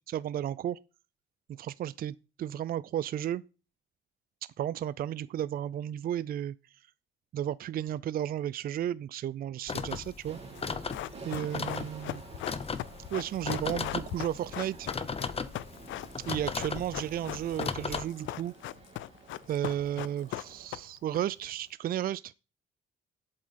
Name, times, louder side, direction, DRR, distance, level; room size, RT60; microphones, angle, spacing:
voice 1, 0.1-0.8 1.5-3.4 4.6-6.6 7.3-10.4 10.7-10.8 11.2-12.2 13.1-14.9 16.2-18.5 19.5-22.3, right 11 dB, 50° right, 0.4 m, -33 dB
sound 1, 9.7-18.0, left 5 dB, 30° left, 0.8 m, -37 dB
sound 2, 10.2-20.7, right 4 dB, 35° right, 3.1 m, -51 dB
Run, 10.5-21.2 21.4-21.5, left 14 dB, 75° left, 0.4 m, -39 dB
7.7 x 7.7 x 4.2 m
cardioid pair, 90°, 20 cm